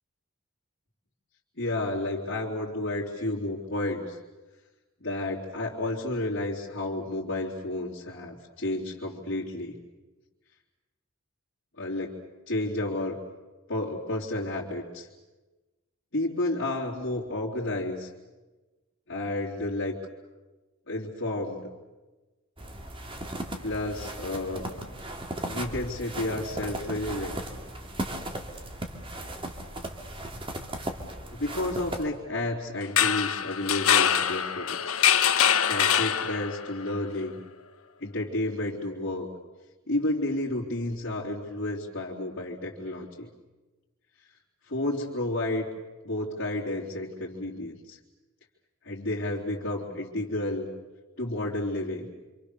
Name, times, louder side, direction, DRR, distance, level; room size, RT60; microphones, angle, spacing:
voice 1, 1.6-4.2 5.0-9.7 11.7-12.1 12.5-13.2 13.7-15.1 16.1-18.1 19.1-19.9 20.9-21.7 23.6-24.6 25.5-27.4 31.3-35.0 35.6-37.4 38.0-39.3 39.9-43.3 44.7-45.7 46.0-48.0 48.8-50.7 51.2-52.1, left 1 dB, 55° left, -6 dB, 3.6 m, -31 dB
sound 1, 22.6-32.1, right 1 dB, 25° right, 2.5 m, -37 dB
sound 2, 32.8-36.7, left 9 dB, 85° left, 1.4 m, -24 dB
27.5 x 27.0 x 6.9 m, 1.2 s
head